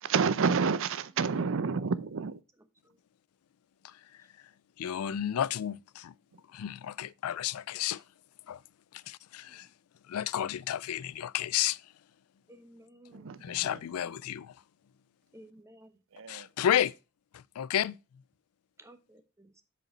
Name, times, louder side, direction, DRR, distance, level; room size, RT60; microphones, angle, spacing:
voice 1, 0.0-2.4 13.1-13.8 16.2-16.5, right 5 dB, 65° right, 0.6 m, -29 dB
voice 2, 4.8-6.1 6.5-8.0 8.5-8.6 8.9-9.7 10.1-11.8 13.4-14.5 16.3-16.9 17.3-18.0, left 10 dB, 80° left, 0.4 m, -31 dB
voice 3, 12.5-14.2 15.3-15.9 18.8-19.6, right 1 dB, 15° right, 0.9 m, -55 dB
7.8 x 5.0 x 4.2 m
head